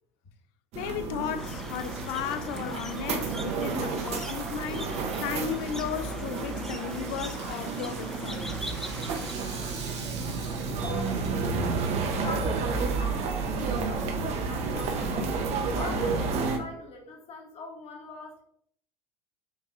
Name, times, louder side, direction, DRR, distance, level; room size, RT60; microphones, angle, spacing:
voice 1, 0.7-8.5 11.6-11.7, left 8 dB, 60° left, 0.5 m, -35 dB
sound 1, 0.7-16.6, right 4 dB, 50° right, 0.7 m, -31 dB
sound 2, 1.4-9.3, left 1 dB, 5° left, 0.4 m, -41 dB
Rattle (instrument), 6.0-12.1, right 4 dB, 80° right, 1.0 m, -45 dB
voice 2, 10.6-15.1 15.8-18.4, left 2 dB, 45° left, 1.2 m, -43 dB
5.2 x 2.6 x 2.6 m
hypercardioid pair, 80°, 14 cm